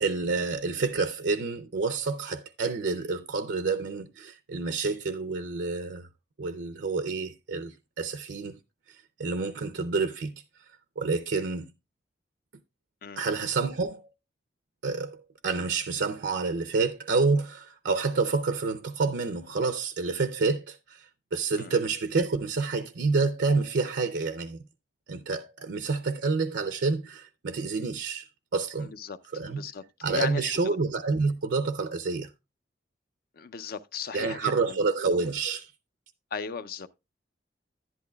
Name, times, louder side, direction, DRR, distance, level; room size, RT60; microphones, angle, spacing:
voice 1, 0.0-6.1 6.4-8.6 9.2-10.3 11.0-11.7 13.2-14.1 14.8-24.6 25.1-28.3 28.5-28.9 29.3-29.6 30.0-32.3 34.1-35.7, right 4 dB, 75° right, 0.6 m, -28 dB
voice 2, 28.8-29.2 29.5-29.8 30.1-30.8 33.3-34.8 36.3-36.9, left 5 dB, 55° left, 0.5 m, -36 dB
11.0 x 10.5 x 2.3 m
head